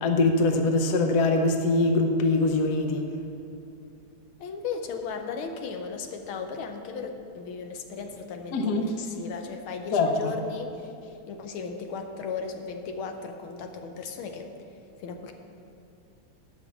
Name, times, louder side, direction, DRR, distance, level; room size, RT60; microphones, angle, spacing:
voice 1, 0.0-3.1 8.5-8.9 9.9-10.3, left 2 dB, 60° left, 4 dB, 1.2 m, -23 dB
voice 2, 4.4-14.5 15.0-15.3, left 5 dB, 85° left, 5 dB, 1.6 m, -36 dB
11.0 x 5.9 x 6.9 m, 2.5 s
omnidirectional pair, 2.2 m